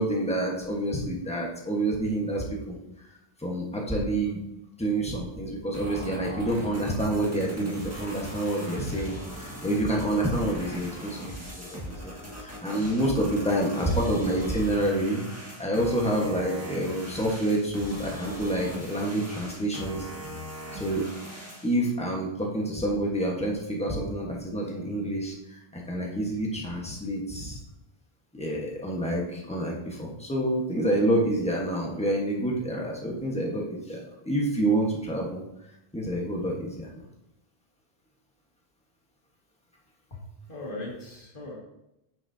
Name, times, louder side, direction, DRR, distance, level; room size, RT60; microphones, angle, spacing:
voice 1, 0.0-2.8 3.4-4.4 4.8-15.3 15.6-20.0 20.7-21.1 21.6-27.6 28.3-35.4 35.9-36.9, right 1 dB, 5° left, -2 dB, 1.3 m, -28 dB
sound 1, 5.7-21.7, equal, 15° right, 1.7 m, -40 dB
voice 2, 40.1-41.5, left 2 dB, 55° left, -3 dB, 2.2 m, -39 dB
8.9 x 6.3 x 2.8 m, 0.87 s
omnidirectional pair, 1.0 m